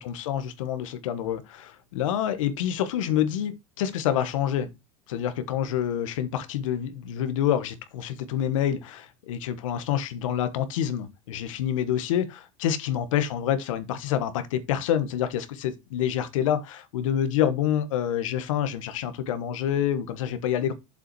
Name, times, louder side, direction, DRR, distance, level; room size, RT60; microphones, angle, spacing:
voice 1, 0.0-4.7 5.1-20.7, left 10 dB, 90° left, 1.2 m, -27 dB
7.2 x 5.5 x 4.6 m
supercardioid pair, 130°, 16 cm